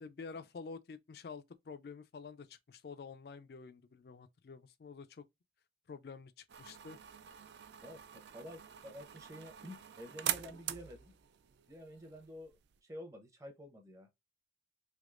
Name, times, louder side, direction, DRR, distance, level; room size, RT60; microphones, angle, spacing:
voice 1, 0.0-5.3 5.9-7.0, left 5 dB, 60° left, 0.4 m, -49 dB
sound 1, 6.5-12.8, right 11 dB, 75° right, 0.4 m, -44 dB
voice 2, 7.8-11.1 11.7-14.1, equal, 15° right, 0.7 m, -50 dB
3.4 x 3.1 x 2.4 m
head